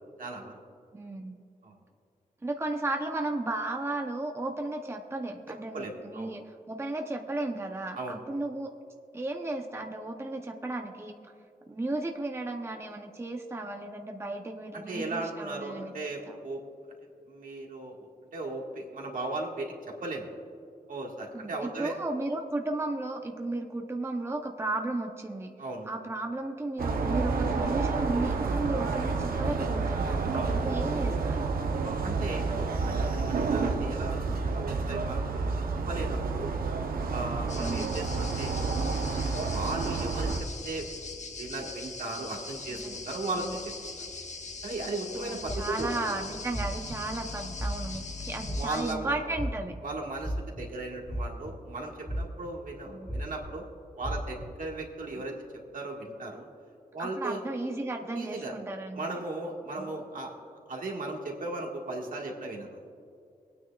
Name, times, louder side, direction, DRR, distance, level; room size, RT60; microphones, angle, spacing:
voice 1, 0.2-0.5 1.6-1.7 5.7-6.3 7.9-8.2 14.7-16.6 17.3-20.3 20.9-22.0 25.6-25.9 30.3-30.7 31.8-35.5 35.9-36.5 37.1-38.6 39.4-40.9 41.4-43.7 44.6-46.0 48.5-49.2 49.8-53.7 53.9-55.3 55.7-56.5 56.9-57.4 58.1-58.5 58.9-60.3 60.7-62.8, right 2 dB, 70° right, 0 dB, 1.6 m, -37 dB
voice 2, 0.9-1.4 2.4-8.7 9.1-11.1 11.7-15.9 16.3-16.4 21.3-25.5 25.9-30.3 30.6-31.4 37.6-38.0 42.8-43.0 43.3-43.6 45.1-49.7 52.9-53.1 57.0-59.2 59.8-60.0, right 2 dB, 20° right, 2 dB, 0.8 m, -34 dB
sound 1, 26.8-40.4, right 4 dB, 90° right, 0.8 m, -29 dB
sound 2, 37.5-48.9, left 3 dB, 55° left, 1.0 m, -41 dB
sound 3, 45.5-46.0 46.5-47.0 47.5-48.0 48.4-48.9 49.3-49.8 50.2-50.6 51.1-51.7 52.0-52.5 53.1-53.5 54.0-54.5, equal, 10° left, 1.4 m, -34 dB
22.5 x 9.3 x 2.4 m, 2.4 s
wide cardioid pair, 90°, 15 cm